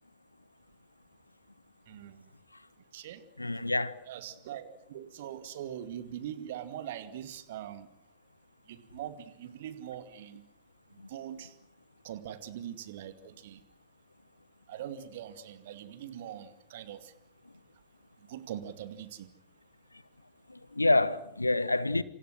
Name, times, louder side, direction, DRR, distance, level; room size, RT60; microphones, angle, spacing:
voice 1, 1.9-2.3 2.9-3.2 4.1-7.9 8.7-10.4 11.1-11.5 12.0-13.6 14.7-17.1 18.3-19.3, right 10 dB, 55° right, 2.3 m, -42 dB
voice 2, 3.4-4.0 11.0-11.1 20.5-22.0, left 2 dB, 85° left, 1.1 m, -27 dB
28.0 x 27.0 x 6.3 m
figure-of-eight pair, 90°, 0 cm